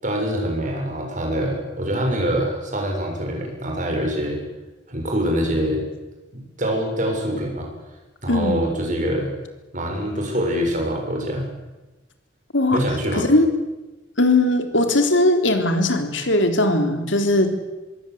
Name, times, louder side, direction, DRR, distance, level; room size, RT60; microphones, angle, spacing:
voice 1, 0.0-4.4 4.9-5.8 6.3-7.7 8.2-9.3 9.7-11.5 12.7-13.2, equal, 40° right, 1 dB, 7.4 m, -24 dB
voice 2, 8.3-8.6 12.5-12.8 13.2-13.5 14.2-17.6, left 1 dB, 75° left, 6 dB, 3.6 m, -19 dB
25.5 x 22.0 x 8.2 m, 1.1 s
head